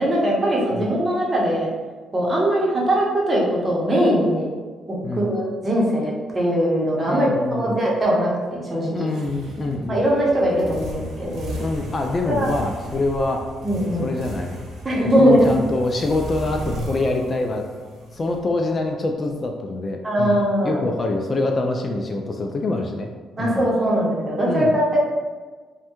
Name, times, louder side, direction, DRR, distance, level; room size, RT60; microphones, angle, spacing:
voice 1, 0.0-1.7 2.1-4.5 4.9-9.1 9.9-11.6 12.3-12.5 13.6-14.1 14.8-15.5 20.0-20.8 23.4-25.0, equal, 30° right, -4 dB, 0.9 m, -21 dB
voice 2, 7.1-7.8 8.9-10.1 11.6-13.5 14.0-14.7 15.2-17.7 18.1-23.1 23.4-23.7 24.5-24.7, left 2 dB, 40° left, 2 dB, 0.3 m, -25 dB
sound 1, 9.1-18.9, equal, 75° right, 0.8 m, -35 dB
3.2 x 2.2 x 3.0 m, 1.4 s
cardioid pair, 90°, 0 cm